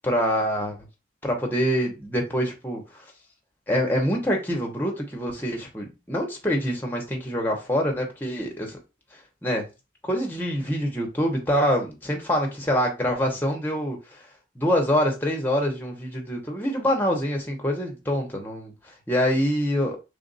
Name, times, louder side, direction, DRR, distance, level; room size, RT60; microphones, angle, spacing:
voice 1, 0.0-0.8 1.2-3.0 3.7-8.8 9.1-9.6 10.0-14.2 14.5-20.0, equal, 10° left, 0.9 m, -25 dB
3.5 x 2.5 x 4.0 m
head